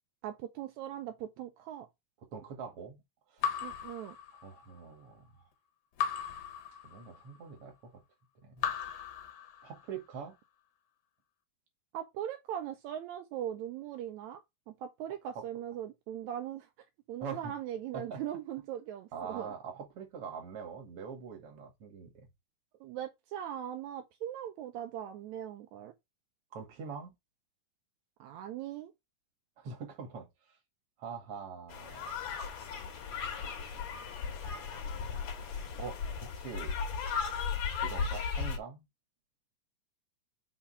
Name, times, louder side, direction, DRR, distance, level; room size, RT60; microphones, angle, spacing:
voice 1, 0.2-1.9 3.6-4.2 11.9-16.7 17.1-19.5 22.8-25.9 28.2-28.9, right 11 dB, 80° right, 2.0 m, -40 dB
voice 2, 2.3-3.0 3.3-3.6 4.4-5.3 6.8-8.0 8.4-8.7 9.6-10.4 17.2-17.5 17.9-18.2 19.1-22.1 26.5-27.1 29.6-30.3 31.0-32.3 34.3-35.2 35.8-36.8 37.7-38.8, right 6 dB, 55° right, 2.6 m, -44 dB
Raindrop / Drip, 3.4-4.8 6.0-7.4 8.6-10.0, left 8 dB, 90° left, 2.6 m, -37 dB
sound 1, 31.7-38.6, left 6 dB, 75° left, 2.7 m, -36 dB
5.6 x 3.7 x 5.5 m
omnidirectional pair, 3.4 m